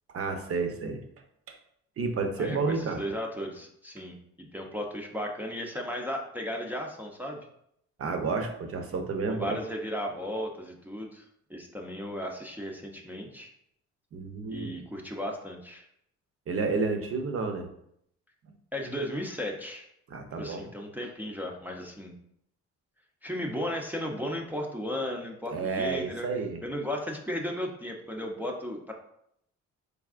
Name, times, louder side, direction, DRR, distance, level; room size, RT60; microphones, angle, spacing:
voice 1, 0.1-1.0 1.5-1.6 2.0-3.0 8.0-9.6 14.1-14.8 16.5-17.7 20.1-20.7 25.5-26.6, right 4 dB, 50° right, 5 dB, 0.7 m, -30 dB
voice 2, 2.4-7.4 9.3-13.5 14.5-15.8 18.7-19.9 20.4-22.1 23.2-26.3 26.6-28.9, equal, 5° right, 0 dB, 0.5 m, -35 dB
4.0 x 3.5 x 2.4 m, 0.73 s
cardioid pair, 90°, 30 cm